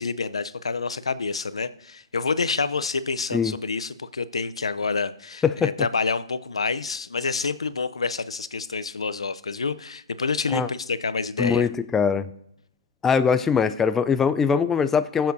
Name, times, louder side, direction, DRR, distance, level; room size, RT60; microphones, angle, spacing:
voice 1, 0.0-11.7, left 4 dB, 85° left, 14 dB, 0.6 m, -28 dB
voice 2, 11.4-12.3 13.0-15.3, left 6 dB, 10° left, 12 dB, 0.4 m, -22 dB
19.5 x 7.4 x 2.7 m, 0.74 s
hypercardioid pair, 145°, 3 cm